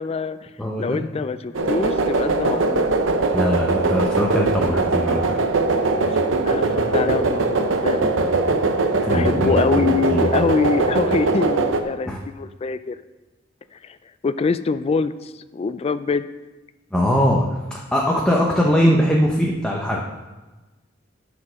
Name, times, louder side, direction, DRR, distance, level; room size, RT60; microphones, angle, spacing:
voice 1, 0.0-0.5 0.8-2.9 5.9-6.1 6.4-8.1 9.1-13.0 13.7-14.0 14.2-16.3, left 4 dB, 30° left, 13 dB, 0.3 m, -24 dB
voice 2, 0.6-1.0 3.3-5.4 8.9-10.3 12.0-12.2 16.9-20.0, equal, 5° left, -2 dB, 0.8 m, -21 dB
sound 1, 1.5-11.8, right 3 dB, 85° right, 0.8 m, -21 dB
9.4 x 5.2 x 6.2 m, 1.2 s
head